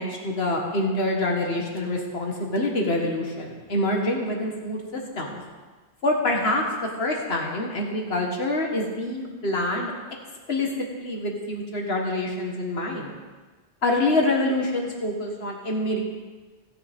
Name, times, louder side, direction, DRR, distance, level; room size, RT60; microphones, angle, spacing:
voice 1, 0.0-5.4 6.0-9.9 10.5-10.7 11.0-13.1 13.8-16.0, left 2 dB, 60° left, 0 dB, 2.0 m, -26 dB
16.5 x 9.7 x 3.7 m, 1.3 s
omnidirectional pair, 1.2 m